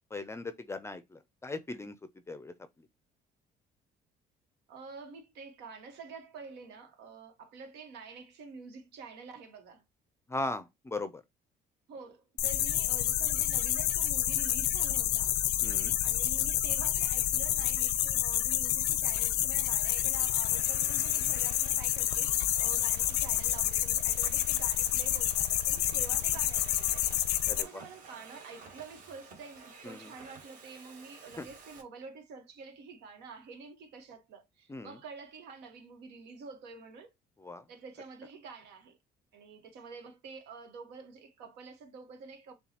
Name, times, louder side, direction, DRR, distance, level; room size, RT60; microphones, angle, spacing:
voice 1, 0.1-1.9 2.3-2.5 10.3-11.2 15.6-16.0 27.5-27.8 29.8-30.0 31.4-31.5 34.7-35.0 37.4-37.6, left 2 dB, 15° left, 0.5 m, -38 dB
voice 2, 4.7-9.8 11.9-15.4 16.0-27.0 27.6-37.1 37.7-39.0 39.3-42.5, right 4 dB, 85° right, 1.2 m, -48 dB
sound 1, 12.4-27.6, left 12 dB, 80° left, 0.5 m, -29 dB
Domestic sounds home sounds, 18.0-18.4 19.1-31.8, right 5 dB, 50° right, 1.6 m, -52 dB
6.9 x 2.3 x 2.8 m
cardioid pair, 110°, 17 cm